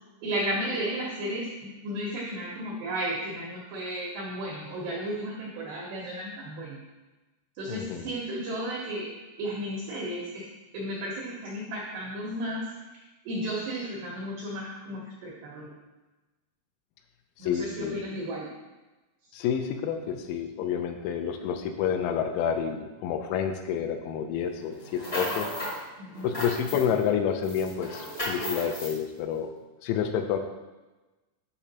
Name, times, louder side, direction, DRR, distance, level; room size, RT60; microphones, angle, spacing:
voice 1, 0.2-6.8 7.6-9.1 9.4-10.5 10.7-12.7 13.3-15.7 17.4-18.5 26.0-26.3, right 1 dB, 85° right, -3 dB, 2.3 m, -33 dB
voice 2, 7.7-8.1 17.4-18.1 19.3-25.5 26.2-29.5 29.8-30.4, left 8 dB, 90° left, 6 dB, 3.4 m, -29 dB
sound 1, 24.8-25.8 26.1-27.1 27.4-29.0, left 1 dB, 70° left, 0.8 m, -34 dB
8.5 x 5.9 x 2.8 m, 1.1 s
omnidirectional pair, 6.0 m